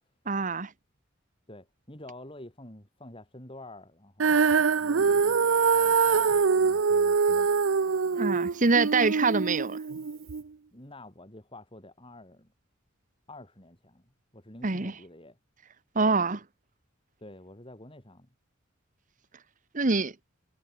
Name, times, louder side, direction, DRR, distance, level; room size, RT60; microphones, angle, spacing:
voice 1, 0.3-0.7 8.2-9.8 14.6-14.9 15.9-16.4 19.7-20.1, right 3 dB, 40° right, 1.1 m, -25 dB
voice 2, 1.5-7.6 10.7-12.5 13.3-15.4 17.2-18.3, left 1 dB, 25° left, 4.5 m, -48 dB
Female singing, 4.2-10.4, right 5 dB, 65° right, 0.6 m, -24 dB
head